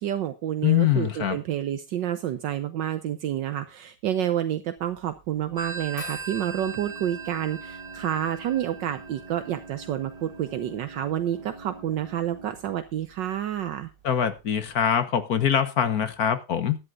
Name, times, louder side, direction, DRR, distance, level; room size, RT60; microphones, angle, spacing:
voice 1, 0.0-13.9, right 11 dB, 75° right, 1.5 m, -29 dB
voice 2, 0.6-1.4 14.0-16.8, left 9 dB, 55° left, 1.4 m, -23 dB
Organ, 4.8-14.9, right 2 dB, 55° right, 3.5 m, -47 dB
Telephone, 5.6-10.9, right 4 dB, 20° left, 1.3 m, -40 dB
18.5 x 11.0 x 2.5 m
omnidirectional pair, 2.1 m